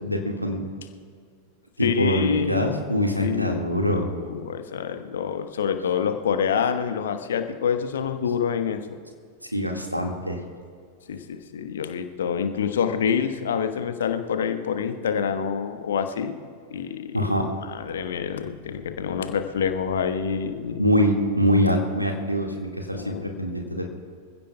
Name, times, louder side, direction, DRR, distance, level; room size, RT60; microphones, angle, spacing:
voice 1, 0.0-0.6 1.8-4.1 9.5-10.4 17.1-17.5 20.8-23.8, equal, 90° right, 2 dB, 1.9 m, -24 dB
voice 2, 1.8-2.7 3.2-3.7 4.2-8.8 11.1-16.3 16.7-17.3 17.6-20.8 22.9-23.4, left 7 dB, 65° left, 8 dB, 1.2 m, -27 dB
26.0 x 16.0 x 2.3 m, 2.1 s
figure-of-eight pair, 90°, 0 cm